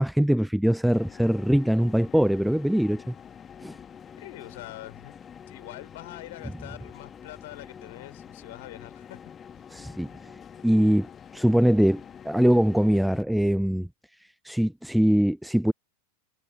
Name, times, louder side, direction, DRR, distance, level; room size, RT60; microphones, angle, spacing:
voice 1, 0.0-3.1 3.6-3.8 9.7-10.1 10.6-13.9 14.5-15.7, equal, ahead, 0.3 m, -22 dB
sound 1, 0.8-13.2, left 8 dB, 20° left, 1.4 m, -46 dB
voice 2, 4.2-5.2 5.5-9.3, left 17 dB, 55° left, 4.3 m, -44 dB
figure-of-eight pair, 90°, 0 cm